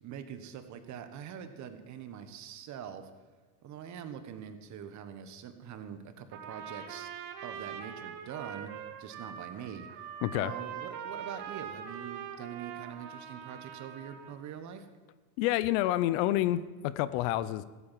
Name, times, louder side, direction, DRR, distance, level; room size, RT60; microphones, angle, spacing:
voice 1, 0.0-3.1 3.6-7.1 7.4-8.7 9.0-9.9 10.3-14.9, right 8 dB, 35° right, 9 dB, 1.3 m, -44 dB
Trumpet, 6.3-14.4, right 8 dB, 55° right, 1.6 m, -43 dB
voice 2, 10.2-10.5 15.4-17.6, left 14 dB, 60° left, 16 dB, 0.7 m, -28 dB
15.0 x 8.2 x 7.4 m, 1.3 s
supercardioid pair, 125°, 47 cm